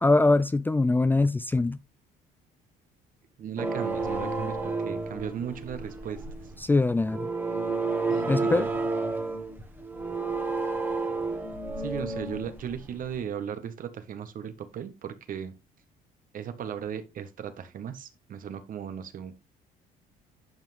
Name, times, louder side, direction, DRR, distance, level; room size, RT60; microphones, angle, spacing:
voice 1, 0.0-1.8 6.6-7.3 8.3-8.7, left 2 dB, 10° left, 0.4 m, -22 dB
voice 2, 3.4-6.5 8.1-8.7 11.8-15.5 16.3-19.3, right 8 dB, 55° right, 1.6 m, -37 dB
sound 1, 3.6-13.1, right 3 dB, 10° right, 1.6 m, -31 dB
10.5 x 5.8 x 3.5 m
cardioid pair, 110°, 17 cm